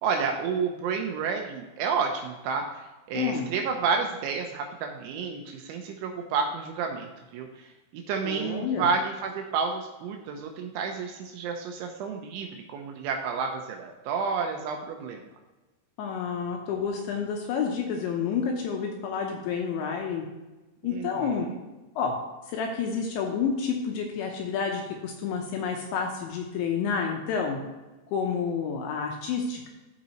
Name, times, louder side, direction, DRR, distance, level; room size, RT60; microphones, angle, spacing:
voice 1, 0.0-15.2 20.8-21.6, right 5 dB, 80° right, 3 dB, 2.9 m, -30 dB
voice 2, 3.2-3.5 8.2-8.9 16.0-20.2 20.8-21.5 22.0-22.1 22.5-27.6 28.1-29.7, left 6 dB, 75° left, 1 dB, 2.8 m, -29 dB
14.0 x 5.2 x 3.0 m, 1.2 s
omnidirectional pair, 5.9 m